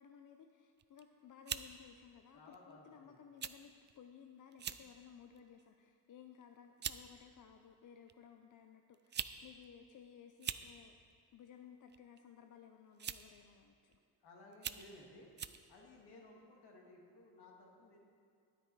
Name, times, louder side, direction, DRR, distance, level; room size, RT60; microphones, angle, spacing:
voice 1, 0.0-10.9 11.3-14.0, left 8 dB, 50° left, 5 dB, 0.6 m, -58 dB
sound 1, 0.8-1.0 1.5-1.7 2.5-2.7 3.4-3.6 3.9-4.0 4.5-4.8 5.4-5.6 6.4-6.5 6.8-7.0 8.1-8.2 8.9-9.4 9.6-9.7 10.3-10.7 11.9-12.2 13.0-13.3 13.9-14.0 14.5-14.9 15.4-15.6, right 8 dB, 30° right, 0.3 m, -42 dB
voice 2, 2.3-3.2 14.2-15.3 15.7-18.0, left 2 dB, 70° left, -1 dB, 2.2 m, -58 dB
10.0 x 9.4 x 4.7 m, 2.3 s
cardioid pair, 85°, 40 cm